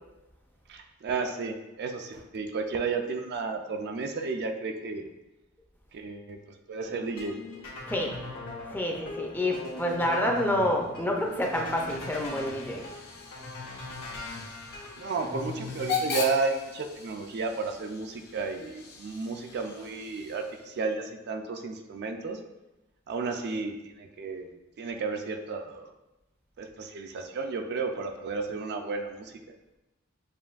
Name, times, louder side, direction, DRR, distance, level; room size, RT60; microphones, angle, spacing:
voice 1, 0.7-5.1 5.9-6.4 6.7-7.4 15.0-22.4 23.1-24.5 24.8-25.9 26.6-29.3, right 4 dB, 50° right, 5 dB, 0.4 m, -32 dB
sound 1, 6.8-16.2, left 2 dB, 85° left, 1.5 m, -41 dB
voice 2, 8.7-12.8, left 1 dB, 10° left, 0 dB, 0.5 m, -28 dB
Hiss / Train / Alarm, 11.2-20.8, left 5 dB, 50° left, 0.7 m, -40 dB
7.3 x 2.6 x 2.4 m, 0.97 s
head